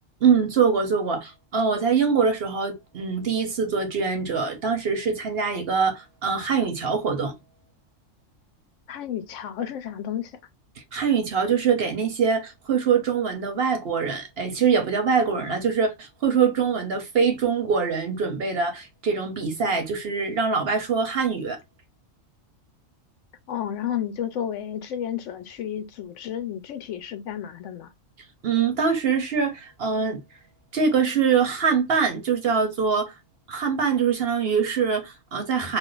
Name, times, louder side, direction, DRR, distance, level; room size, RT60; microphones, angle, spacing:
voice 1, 0.2-7.3 10.9-21.6 28.4-30.2 30.7-33.1 33.5-35.8, right 6 dB, 55° right, 0.9 m, -23 dB
voice 2, 8.9-10.3 23.5-27.9, left 10 dB, 75° left, 0.9 m, -31 dB
2.5 x 2.4 x 3.7 m
omnidirectional pair, 1.4 m